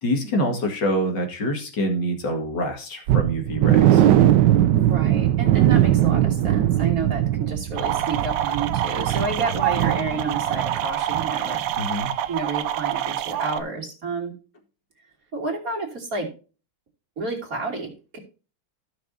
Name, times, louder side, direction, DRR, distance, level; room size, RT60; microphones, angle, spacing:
voice 1, 0.0-4.1 11.8-12.1, equal, 55° left, 3 dB, 2.7 m, -26 dB
sound 1, 3.1-10.8 11.1-11.3 11.7-11.8, right 12 dB, 70° right, 1.1 m, -20 dB
voice 2, 4.7-11.6 12.3-14.4 15.3-16.3 17.2-18.2, right 3 dB, 40° right, 0 dB, 3.1 m, -30 dB
sound 2, 7.8-13.6, right 11 dB, 85° right, 1.7 m, -27 dB
15.5 x 6.2 x 2.7 m, 0.35 s
omnidirectional pair, 2.4 m